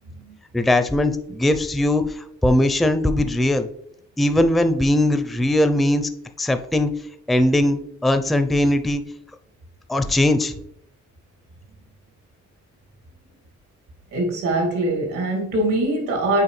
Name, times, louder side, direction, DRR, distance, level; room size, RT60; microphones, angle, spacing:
voice 1, 0.5-3.7 4.2-6.1 6.4-6.9 7.3-9.0 9.9-10.5, left 1 dB, ahead, 8 dB, 0.4 m, -20 dB
voice 2, 14.1-16.4, right 1 dB, 90° right, 1 dB, 2.3 m, -23 dB
7.5 x 4.7 x 3.2 m, 0.72 s
cardioid pair, 90°, 30 cm